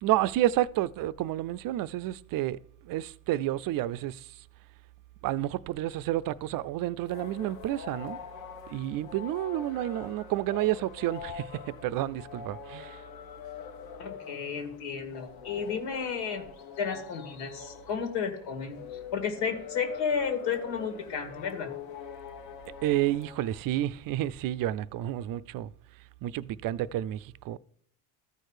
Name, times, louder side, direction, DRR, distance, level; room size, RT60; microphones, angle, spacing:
voice 1, 0.0-4.3 5.2-8.2 8.7-13.0 22.8-25.7 26.2-27.6, right 14 dB, 50° right, 0.5 m, -30 dB
sound 1, 7.0-24.0, left 7 dB, 55° left, 1.2 m, -44 dB
voice 2, 14.0-16.5 16.8-21.7, left 6 dB, 80° left, 2.2 m, -32 dB
13.5 x 4.5 x 4.9 m
supercardioid pair, 100°, 44 cm